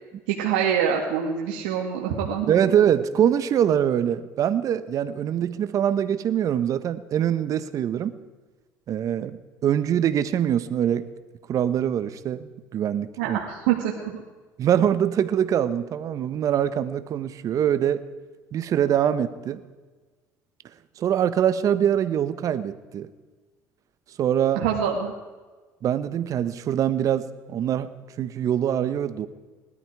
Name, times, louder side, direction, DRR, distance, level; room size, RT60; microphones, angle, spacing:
voice 1, 0.3-2.7 13.2-14.2 24.6-25.1, right 8 dB, 90° right, -1 dB, 1.9 m, -25 dB
voice 2, 2.5-8.1 8.9-11.1 11.5-13.4 14.6-18.1 18.5-19.6 21.0-23.1 24.2-24.6 25.8-29.3, right 9 dB, 50° right, 13 dB, 1.1 m, -23 dB
20.0 x 13.0 x 4.8 m, 1.3 s
supercardioid pair, 95°, 7 cm